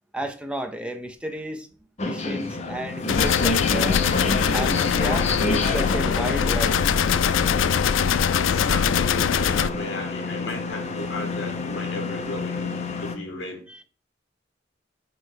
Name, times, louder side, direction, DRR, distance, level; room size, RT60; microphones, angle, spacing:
voice 1, 0.1-1.7 2.0-4.0 4.5-6.8 13.7-13.8, right 1 dB, 5° right, 0.6 m, -32 dB
sound 1, 2.0-13.2, left 3 dB, 35° left, 0.9 m, -29 dB
sound 2, 3.1-9.7, left 7 dB, 85° left, 0.4 m, -22 dB
voice 2, 8.3-12.7 13.0-13.6, left 2 dB, 65° left, 1.7 m, -35 dB
6.3 x 3.3 x 4.7 m
head